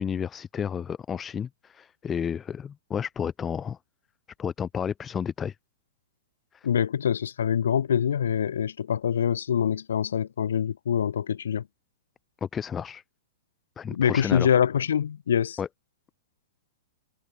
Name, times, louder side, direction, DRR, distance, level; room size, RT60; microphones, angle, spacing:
voice 1, 0.0-3.8 4.4-5.6 6.5-6.7 12.4-13.0 13.8-14.5 15.6-15.7, left 7 dB, 20° left, 5.7 m, -31 dB
voice 2, 6.6-11.6 13.9-15.6, left 8 dB, 85° left, 3.7 m, -25 dB
hypercardioid pair, 140°, 0 cm